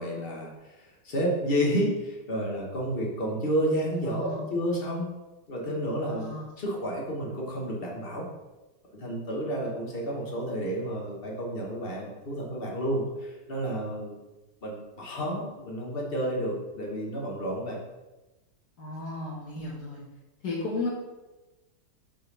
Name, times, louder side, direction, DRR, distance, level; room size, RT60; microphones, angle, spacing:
voice 1, 0.0-5.1 5.5-8.3 8.9-14.2 14.6-17.8, equal, 35° left, -2 dB, 1.4 m, -31 dB
voice 2, 4.0-4.5 6.0-6.4 18.8-20.0 20.4-20.9, left 2 dB, 65° left, -4 dB, 1.9 m, -34 dB
5.5 x 4.5 x 5.4 m, 1.1 s
omnidirectional pair, 1.8 m